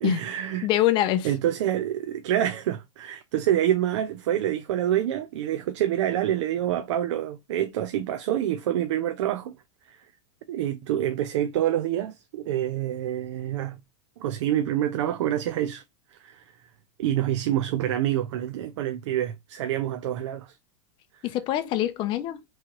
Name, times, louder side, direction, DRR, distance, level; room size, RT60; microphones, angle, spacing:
voice 1, 0.0-0.7 1.2-9.6 10.5-13.8 14.2-15.8 16.2-16.4 17.0-20.5, right 11 dB, 75° right, 0.5 m, -27 dB
voice 2, 0.6-1.3 21.2-22.4, left 13 dB, 30° left, 0.5 m, -24 dB
3.6 x 3.1 x 2.9 m
supercardioid pair, 150°, 15 cm